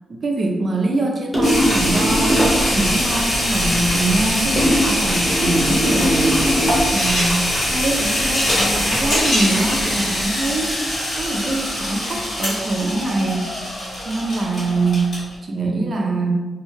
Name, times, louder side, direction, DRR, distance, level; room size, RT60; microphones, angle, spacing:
voice 1, 0.1-6.6 6.9-13.5 14.0-15.1 15.4-16.3, right 2 dB, 50° right, 1 dB, 0.5 m, -23 dB
sound 1, 1.3-2.7 4.6-7.0, equal, 5° right, 0.9 m, -20 dB
sound 2, 1.4-15.3, left 1 dB, 60° left, 1.4 m, -22 dB
2.7 x 2.2 x 3.0 m, 1.3 s
cardioid pair, 95°, 0 cm